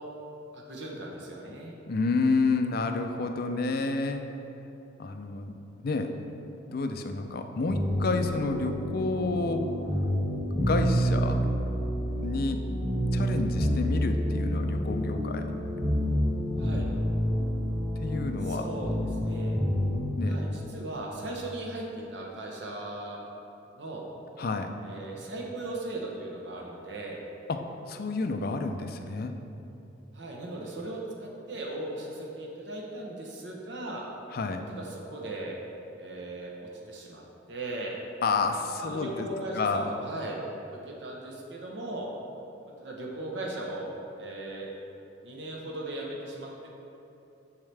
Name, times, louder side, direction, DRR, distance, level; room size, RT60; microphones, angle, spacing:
voice 1, 0.5-1.8 16.6-16.9 18.4-18.9 19.2-19.6 20.3-23.2 23.7-24.0 24.8-27.2 30.1-34.1 34.7-35.6 36.0-38.0 38.8-40.4 40.7-42.1 42.8-44.7 45.2-46.7, right 2 dB, 65° right, -2 dB, 0.9 m, -38 dB
voice 2, 1.9-4.2 5.0-5.5 5.8-6.1 6.7-9.7 10.6-11.4 12.2-12.6 13.1-15.5 18.0-18.7 20.2-20.4 24.4-24.7 27.5-29.4 34.3-34.6 38.2-39.3 39.5-39.9, left 3 dB, 55° left, 6 dB, 0.5 m, -29 dB
sound 1, 7.7-20.0, equal, 15° right, 1.3 m, -28 dB
7.0 x 6.5 x 3.4 m, 2.8 s
head